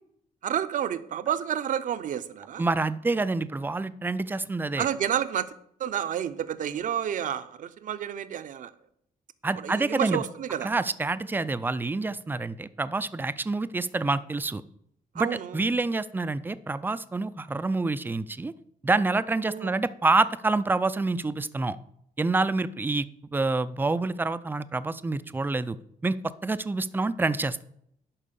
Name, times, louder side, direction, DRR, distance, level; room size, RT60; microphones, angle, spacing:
voice 1, 0.4-2.6 4.8-5.5 5.8-8.7 9.6-10.7 15.2-15.6 19.5-19.7, right 9 dB, 60° right, 12 dB, 0.7 m, -30 dB
voice 2, 2.6-4.9 9.4-10.2 10.6-14.6 15.2-18.5 18.8-21.8 22.2-25.8 26.0-27.6, right 3 dB, 15° right, 15 dB, 0.4 m, -27 dB
11.0 x 4.6 x 6.8 m, 0.73 s
cardioid pair, 125°, 15 cm